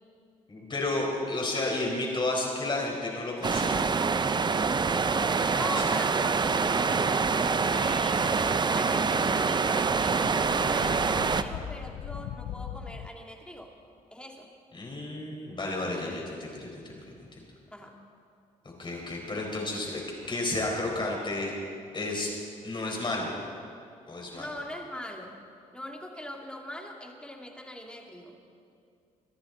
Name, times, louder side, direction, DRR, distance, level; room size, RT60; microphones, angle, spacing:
voice 1, 0.5-3.8 5.7-5.8 14.7-16.8 18.8-20.0 20.3-21.5 21.9-22.3 22.6-23.3 24.1-24.5, left 2 dB, 35° left, -1 dB, 4.4 m, -31 dB
sound 1, 3.4-11.4, right 5 dB, 30° right, 0.6 m, -25 dB
voice 2, 5.0-7.3 7.7-13.7 14.1-14.5 17.7-18.0 24.3-25.3 25.7-28.4, left 1 dB, 5° left, 1 dB, 2.3 m, -41 dB
sound 2, 7.3-13.1, left 9 dB, 80° left, 0.6 m, -42 dB
24.5 x 10.0 x 4.0 m, 2.4 s
cardioid pair, 75°, 15 cm